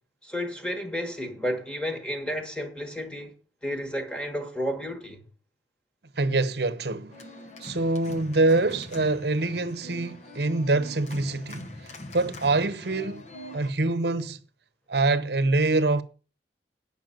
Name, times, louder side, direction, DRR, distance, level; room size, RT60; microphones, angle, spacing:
voice 1, 0.2-3.4 3.6-5.2, equal, 5° left, 1.5 m, -32 dB
voice 2, 6.1-7.3 7.6-13.3 13.5-14.4 14.9-16.0, right 2 dB, 60° right, 0.9 m, -25 dB
Organ, 7.1-13.7, left 1 dB, 40° left, 1.0 m, -43 dB
9.3 x 5.6 x 7.8 m
head